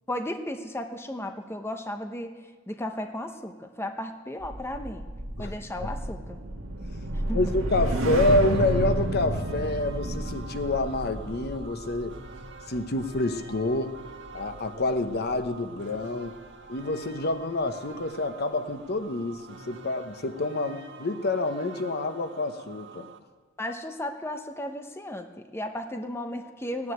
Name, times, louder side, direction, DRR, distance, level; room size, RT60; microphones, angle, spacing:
voice 1, 0.1-5.1 5.4-6.4 7.1-7.5 23.6-26.9, left 1 dB, 10° left, 6 dB, 0.8 m, -35 dB
sound 1, 4.4-14.8 15.1-15.5, right 1 dB, 80° right, 1.7 m, -31 dB
voice 2, 5.4-5.9 7.3-12.2 12.7-14.0 14.3-16.4 16.7-23.1, left 2 dB, 55° left, 9 dB, 0.9 m, -28 dB
sound 2, 8.4-23.2, right 4 dB, 60° right, 1.5 m, -47 dB
16.5 x 9.7 x 8.9 m, 1.4 s
head